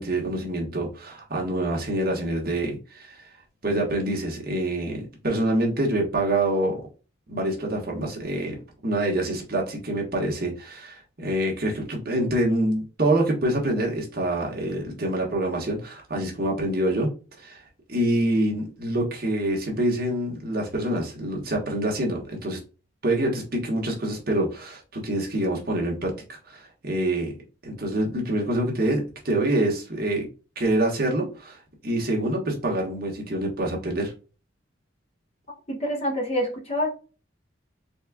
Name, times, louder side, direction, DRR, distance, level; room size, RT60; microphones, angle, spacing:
voice 1, 0.0-3.2 3.6-6.8 7.3-8.5 8.8-17.1 17.4-17.6 17.9-22.6 23.0-27.3 27.6-30.2 30.5-34.1, right 1 dB, 50° right, 0 dB, 1.3 m, -26 dB
voice 2, 35.7-36.9, left 1 dB, 30° left, 0 dB, 1.2 m, -26 dB
4.3 x 3.6 x 2.2 m, 0.35 s
head